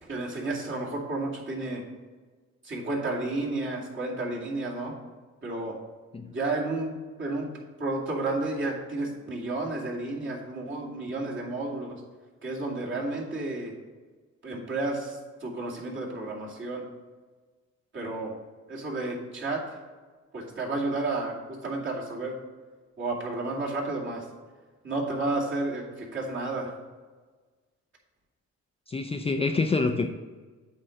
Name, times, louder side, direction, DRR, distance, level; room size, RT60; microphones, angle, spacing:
voice 1, 0.0-1.8 2.6-4.9 5.4-5.8 6.3-7.5 7.8-12.0 12.4-13.7 14.4-16.9 17.9-18.3 18.7-19.8 20.3-22.4 23.0-24.3 24.8-26.8, right 2 dB, 40° right, -3 dB, 2.3 m, -31 dB
voice 2, 28.9-30.1, left 3 dB, 20° left, 5 dB, 0.5 m, -26 dB
8.4 x 3.8 x 6.4 m, 1.4 s
cardioid pair, 90°, 30 cm